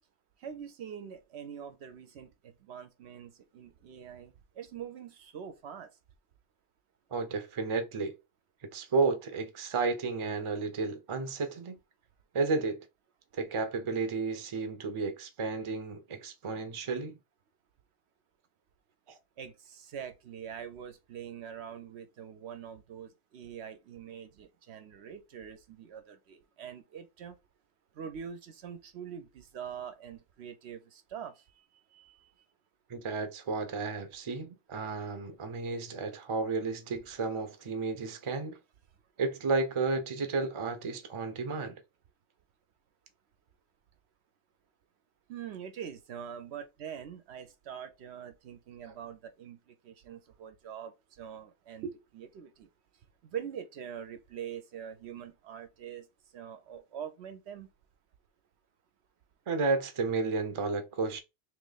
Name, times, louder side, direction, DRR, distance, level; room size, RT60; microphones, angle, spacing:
voice 1, 0.4-5.9 19.4-27.4 28.0-31.4 31.9-32.3 45.3-52.7 53.2-56.1 56.3-57.7, right 8 dB, 70° right, 0.8 m, -44 dB
voice 2, 7.1-8.1 8.6-11.8 12.3-12.8 13.3-17.2 19.1-19.2 32.9-38.6 39.2-41.7 59.5-61.2, right 4 dB, 35° right, 0.5 m, -32 dB
3.1 x 2.8 x 3.8 m
omnidirectional pair, 1.2 m